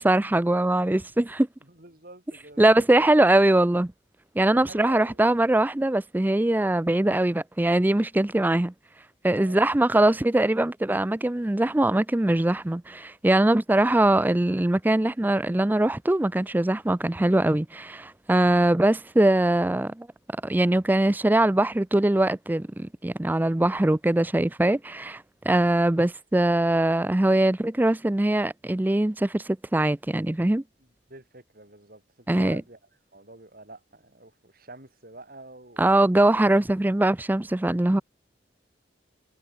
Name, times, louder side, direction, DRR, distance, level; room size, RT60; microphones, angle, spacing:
voice 1, 0.0-1.5 2.6-3.9 4.4-8.7 9.2-20.1 20.4-30.6 32.3-32.6 35.8-38.0, right 1 dB, 10° right, 0.4 m, -22 dB
voice 2, 1.7-3.3 4.5-5.2 9.4-9.7 31.1-32.8 33.1-35.9, right 2 dB, 50° right, 6.8 m, -46 dB
head